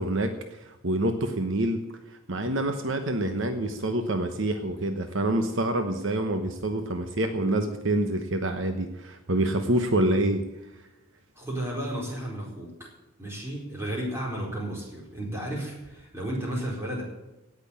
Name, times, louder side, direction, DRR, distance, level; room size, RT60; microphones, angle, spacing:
voice 1, 0.0-1.8 2.3-10.4, right 1 dB, 60° right, 7 dB, 1.0 m, -27 dB
voice 2, 11.4-12.9 13.2-17.0, right 1 dB, 10° right, -3 dB, 4.3 m, -33 dB
17.0 x 6.2 x 8.6 m, 0.99 s
head